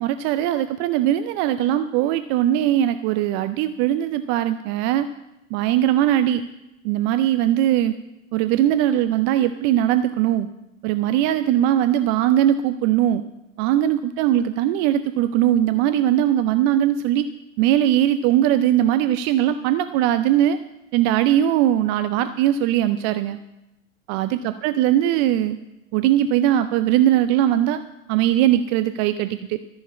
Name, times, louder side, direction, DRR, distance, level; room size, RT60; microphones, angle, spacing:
voice 1, 0.0-5.1 5.5-6.4 6.8-7.9 8.3-10.5 10.8-13.2 13.6-17.3 17.6-20.6 20.9-23.4 24.1-25.6 25.9-27.8 28.1-29.6, right 12 dB, 30° right, 11 dB, 0.4 m, -20 dB
13.5 x 6.4 x 8.3 m, 0.93 s
figure-of-eight pair, 95°, 39 cm